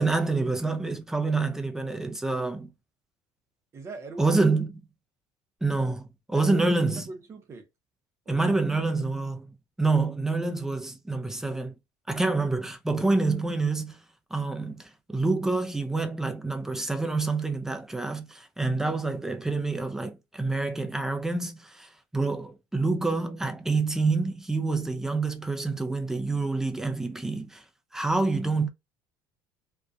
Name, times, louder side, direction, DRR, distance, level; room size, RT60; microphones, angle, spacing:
voice 1, 0.0-2.7 4.2-4.7 5.6-7.1 8.3-9.5 9.8-11.7 12.1-14.0 14.3-27.6 27.9-28.7, right 3 dB, 5° right, 0.4 m, -27 dB
voice 2, 3.7-4.4 6.3-7.7 8.3-8.5, right 4 dB, 30° right, 0.7 m, -41 dB
2.5 x 2.2 x 2.4 m
cardioid pair, 140°, 9 cm